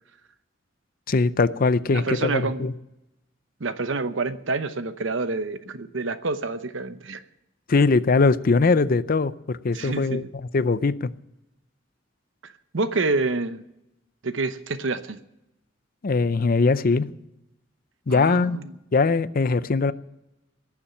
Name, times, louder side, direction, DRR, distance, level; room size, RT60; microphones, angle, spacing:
voice 1, 1.1-2.7 7.7-10.2 10.5-11.1 16.0-17.1 18.1-18.6 18.9-19.9, left 4 dB, 45° left, 0.5 m, -21 dB
voice 2, 1.9-2.7 3.6-7.2 9.7-10.3 12.4-13.6 14.2-15.2 18.1-18.7, right 3 dB, 70° right, 0.9 m, -28 dB
18.0 x 7.2 x 8.5 m
head